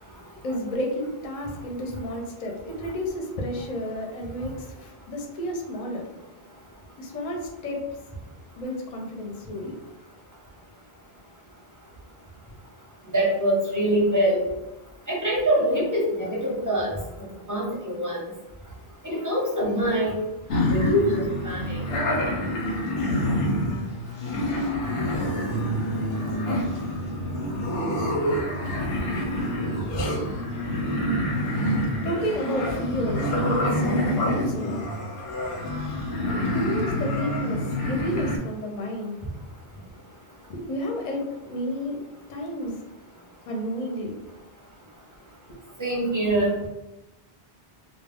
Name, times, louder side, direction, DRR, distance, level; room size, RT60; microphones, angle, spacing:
voice 1, 0.4-4.7 5.1-6.0 7.0-7.8 8.6-9.7 32.0-34.8 36.3-39.2 40.5-42.0 42.3-42.7 43.5-44.1, equal, 50° left, 1 dB, 0.5 m, -31 dB
voice 2, 13.1-14.4 15.1-16.9 17.5-18.3 19.0-20.2 20.7-21.8 45.8-46.5, right 1 dB, 20° right, -5 dB, 0.7 m, -24 dB
sound 1, 20.5-38.4, left 1 dB, 90° left, 0.8 m, -27 dB
2.2 x 2.0 x 3.4 m, 1.0 s
omnidirectional pair, 1.0 m